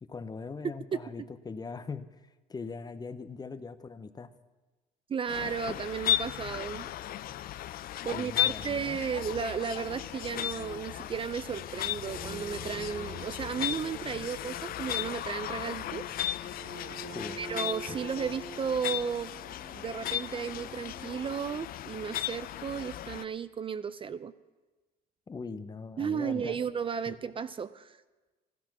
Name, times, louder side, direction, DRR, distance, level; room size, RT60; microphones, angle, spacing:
voice 1, 0.0-4.3 8.1-9.0 17.1-17.4 17.9-18.0 25.3-26.6 27.1-27.2, left 4 dB, 25° left, 12 dB, 0.7 m, -41 dB
voice 2, 5.1-6.9 8.0-16.1 17.4-19.3 19.7-24.3 26.0-28.0, right 7 dB, 30° right, 13 dB, 0.5 m, -34 dB
sound 1, 5.3-23.2, left 14 dB, 60° left, 0.5 m, -36 dB
sound 2, 10.9-11.5 11.9-12.2 12.5-12.8 13.2-14.6 14.9-15.3 15.6-17.0, equal, 5° right, 2.0 m, -61 dB
sound 3, 12.1-21.4, right 3 dB, 55° right, 2.8 m, -47 dB
14.5 x 13.0 x 6.0 m, 1.2 s
cardioid pair, 110°, 17 cm